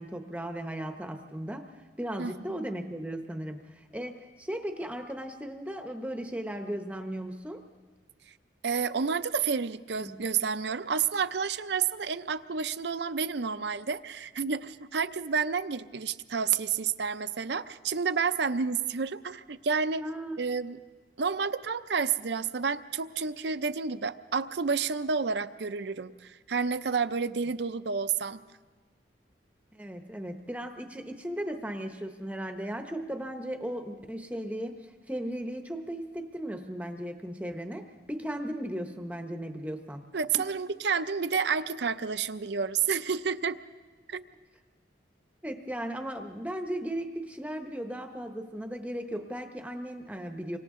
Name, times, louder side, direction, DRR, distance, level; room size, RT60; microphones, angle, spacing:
voice 1, 0.0-1.7 2.0-7.6 10.0-10.2 20.0-20.4 29.7-40.0 40.3-40.5 45.4-50.6, right 1 dB, 5° right, 5 dB, 0.8 m, -36 dB
voice 2, 8.6-20.0 20.4-20.8 21.2-28.4 40.1-43.6 44.1-44.2, right 6 dB, 65° right, 12 dB, 0.6 m, -30 dB
29.0 x 25.0 x 3.7 m, 1.4 s
head